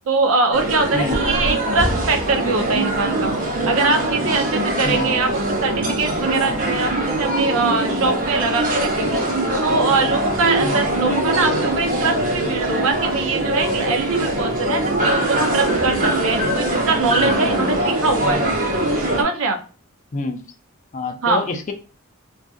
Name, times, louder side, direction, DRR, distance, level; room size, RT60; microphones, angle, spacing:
voice 1, 0.1-3.3 3.7-9.2 9.6-18.4 19.2-19.6 21.2-21.5, right 3 dB, 70° right, 5 dB, 0.5 m, -22 dB
sound 1, 0.5-19.2, right 1 dB, 40° right, 0.8 m, -22 dB
voice 2, 20.9-21.7, left 2 dB, 35° left, 6 dB, 0.4 m, -27 dB
2.6 x 2.4 x 2.3 m, 0.36 s
head